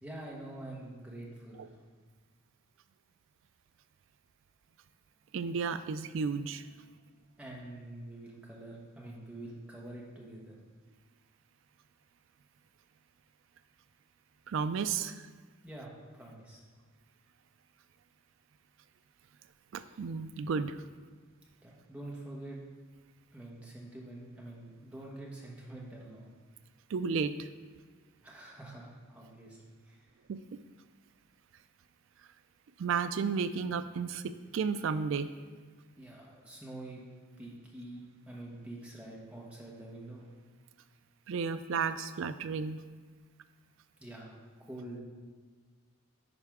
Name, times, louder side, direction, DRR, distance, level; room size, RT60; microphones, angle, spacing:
voice 1, 0.0-1.8 7.4-10.5 15.6-16.6 21.6-22.6 23.3-26.3 28.2-29.6 29.8-30.1 36.0-37.0 37.4-40.3 44.0-44.4 44.6-45.0, right 1 dB, 5° right, -4 dB, 1.1 m, -46 dB
voice 2, 5.3-6.6 14.5-15.2 19.7-20.8 26.9-27.5 30.3-30.6 32.8-35.3 41.3-42.8, right 5 dB, 65° right, 12 dB, 0.3 m, -33 dB
10.0 x 4.5 x 3.6 m, 1.5 s
head